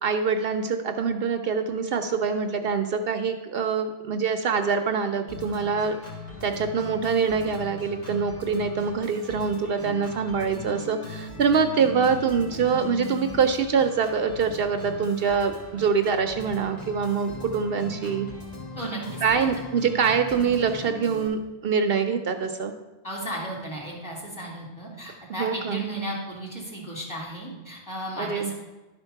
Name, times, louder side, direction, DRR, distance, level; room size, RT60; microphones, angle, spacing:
voice 1, 0.0-6.0 6.4-18.3 19.2-22.7 25.4-25.8 28.2-28.5, right 6 dB, 70° right, 7 dB, 0.8 m, -25 dB
Organ, 5.3-21.3, left 3 dB, 40° left, 2.2 m, -40 dB
voice 2, 18.8-19.5 23.0-28.5, right 1 dB, 20° left, -4 dB, 3.0 m, -34 dB
11.5 x 4.4 x 5.7 m, 1.2 s
omnidirectional pair, 1.1 m